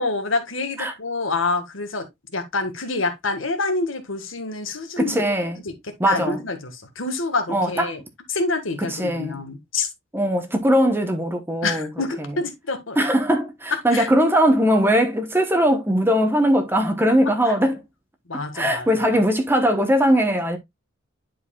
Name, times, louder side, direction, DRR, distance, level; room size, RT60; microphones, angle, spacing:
voice 1, 0.0-2.1 2.3-5.2 5.7-8.0 8.3-9.9 11.6-13.0 13.9-14.1 17.5-17.6 18.3-19.1, left 3 dB, 75° left, 1.6 m, -27 dB
voice 2, 5.0-5.6 6.0-6.4 7.5-7.9 8.8-9.4 10.1-11.9 12.2-12.4 13.0-17.8 18.5-20.6, equal, 10° right, 1.0 m, -20 dB
11.0 x 4.8 x 2.3 m
head